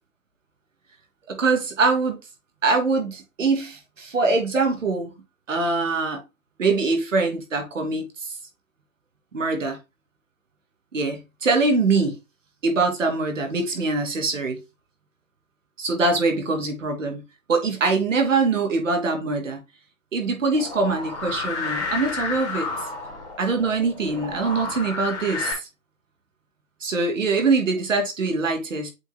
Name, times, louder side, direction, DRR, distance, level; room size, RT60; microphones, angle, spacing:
voice 1, 1.3-2.2 2.6-5.1 5.5-6.2 6.6-8.4 9.3-9.8 10.9-12.2 12.6-14.6 15.8-17.2 17.5-19.6 20.1-22.7 23.4-25.6 26.8-28.9, right 3 dB, 60° right, 2.9 m, -23 dB
sound 1, 20.5-25.5, left 3 dB, 10° left, 2.9 m, -31 dB
8.1 x 5.4 x 2.3 m
hypercardioid pair, 160°, 43 cm